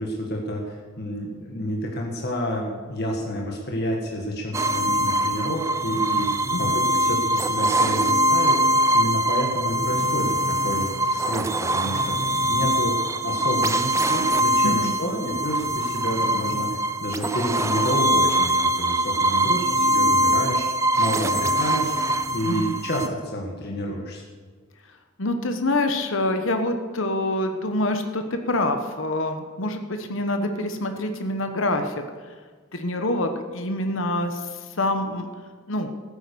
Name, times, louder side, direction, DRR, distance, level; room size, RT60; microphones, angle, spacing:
voice 1, 0.0-8.6 8.9-21.9 22.3-24.2, equal, 45° left, -1 dB, 1.8 m, -29 dB
sound 1, 4.5-23.1, right 1 dB, 15° right, 0.4 m, -23 dB
voice 2, 6.5-6.8 14.6-14.9 22.5-22.7 25.2-32.0 32.7-35.3 35.7-35.9, left 1 dB, 65° left, 6 dB, 1.1 m, -26 dB
13.5 x 10.0 x 6.9 m, 1.5 s
head